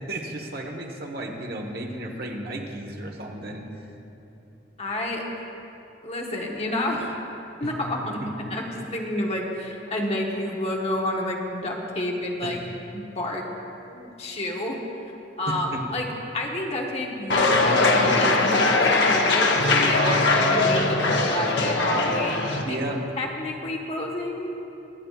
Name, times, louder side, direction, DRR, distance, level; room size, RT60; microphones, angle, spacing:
voice 1, 0.1-3.6 7.6-7.7 8.2-8.3 12.4-12.5 13.9-14.1 15.5-15.8 22.6-23.0, right 1 dB, 60° right, 1 dB, 1.4 m, -33 dB
voice 2, 4.8-5.2 6.0-7.2 7.6-8.2 8.5-12.6 12.9-13.5 14.2-14.8 15.4-16.1 16.3-22.8 23.2-24.5, left 1 dB, 35° left, -1 dB, 1.2 m, -29 dB
sound 1, 17.3-22.6, left 2 dB, 70° left, 1.0 m, -21 dB
25.0 x 8.7 x 2.5 m, 2.9 s
head